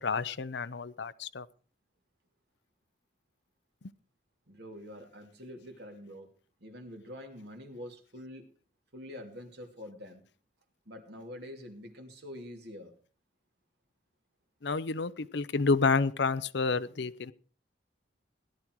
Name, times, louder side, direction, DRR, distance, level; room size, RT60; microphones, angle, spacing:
voice 1, 0.0-1.5 14.6-17.3, left 4 dB, 65° left, 0.7 m, -29 dB
voice 2, 4.5-6.3 6.6-8.5 8.9-10.2 10.9-12.9, left 1 dB, 60° right, 2.8 m, -46 dB
17.0 x 11.5 x 4.6 m
head